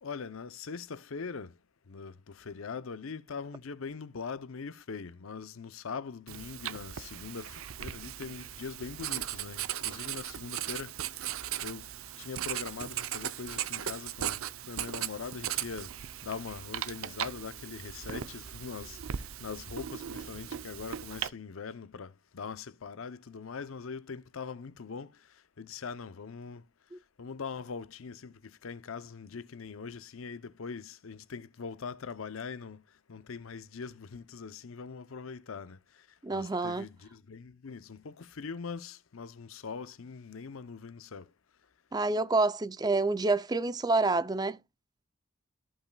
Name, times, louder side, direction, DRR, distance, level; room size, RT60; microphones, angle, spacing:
voice 1, 0.0-1.5 1.9-11.9 12.2-15.9 16.2-25.1 25.6-26.6 27.2-32.8 33.1-41.3, left 5 dB, 80° left, 0.6 m, -42 dB
Writing, 6.3-21.3, right 10 dB, 85° right, 0.6 m, -38 dB
voice 2, 36.2-36.8 41.9-44.6, right 3 dB, 20° right, 0.4 m, -28 dB
14.5 x 5.5 x 2.2 m
head